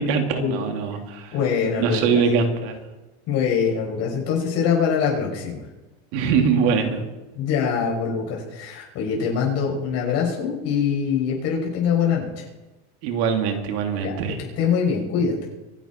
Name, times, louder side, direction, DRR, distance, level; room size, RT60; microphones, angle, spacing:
voice 1, 0.0-1.4 1.8-2.7 6.1-7.0 13.0-14.4, right 5 dB, 70° right, 4 dB, 2.8 m, -22 dB
voice 2, 1.3-2.1 3.3-5.6 7.3-12.3 14.0-14.2 14.6-15.4, left 6 dB, 50° left, -2 dB, 7.1 m, -23 dB
25.5 x 11.0 x 4.5 m, 1.1 s
supercardioid pair, 145°, 32 cm